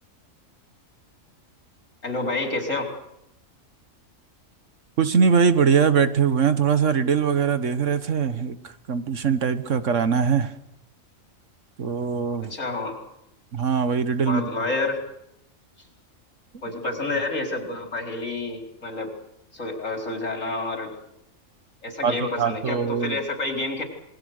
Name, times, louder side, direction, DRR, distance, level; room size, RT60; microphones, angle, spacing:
voice 1, 2.0-2.9 12.5-13.0 14.3-15.0 16.6-19.1 19.5-20.9 21.8-23.8, left 2 dB, 70° left, 2 dB, 4.7 m, -29 dB
voice 2, 5.0-10.5 11.8-12.6 13.5-14.7 22.0-23.2, right 6 dB, 65° right, 11 dB, 1.6 m, -22 dB
27.0 x 21.5 x 6.6 m, 0.80 s
omnidirectional pair, 1.4 m